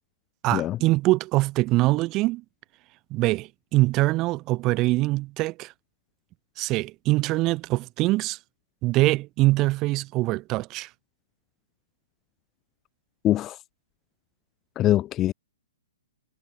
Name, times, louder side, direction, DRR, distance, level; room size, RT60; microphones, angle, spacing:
voice 1, 0.4-2.4 3.1-5.7 6.6-8.4 8.8-10.9, right 19 dB, 25° right, 1.5 m, -23 dB
voice 2, 13.2-13.6 14.8-15.3, left 13 dB, 20° left, 0.4 m, -23 dB
figure-of-eight pair, 115°, 0 cm